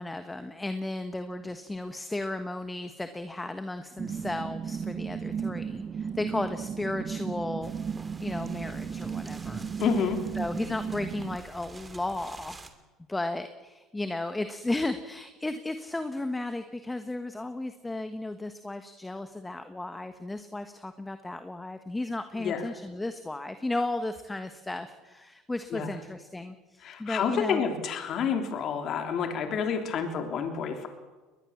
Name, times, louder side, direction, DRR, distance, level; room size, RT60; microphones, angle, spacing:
voice 1, 0.0-7.7 8.2-9.7 10.4-12.6 13.1-27.6, left 2 dB, 10° left, 9 dB, 1.4 m, -34 dB
sound 1, 4.0-11.4, right 7 dB, 35° right, 0.6 m, -35 dB
sound 2, 7.6-12.7, right 2 dB, 20° right, 2.6 m, -47 dB
voice 2, 9.8-10.2 22.4-22.6 25.7-25.9 26.8-30.9, left 6 dB, 50° left, 5 dB, 3.2 m, -29 dB
21.0 x 21.0 x 7.3 m, 1.2 s
supercardioid pair, 100°, 0 cm